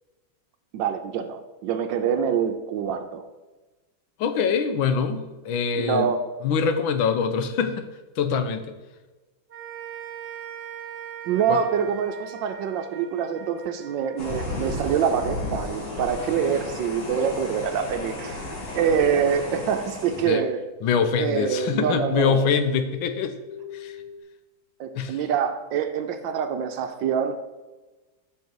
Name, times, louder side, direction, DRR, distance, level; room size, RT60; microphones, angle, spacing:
voice 1, 0.7-3.2 5.8-6.2 11.3-18.4 18.7-20.6 21.2-22.5 24.8-27.4, right 7 dB, 75° right, 8 dB, 1.3 m, -25 dB
voice 2, 4.2-6.1 6.4-7.9 8.2-8.7 11.5-11.6 20.1-20.4 20.8-23.4 23.7-24.0 24.9-25.2, left 6 dB, 85° left, 9 dB, 1.6 m, -24 dB
sound 1, 9.5-15.9, right 9 dB, 40° right, 1.0 m, -41 dB
sound 2, 14.2-20.2, left 2 dB, 55° left, 2.0 m, -33 dB
sound 3, 20.9-24.2, left 7 dB, 25° left, 1.4 m, -44 dB
7.4 x 6.3 x 4.6 m, 1.2 s
omnidirectional pair, 2.1 m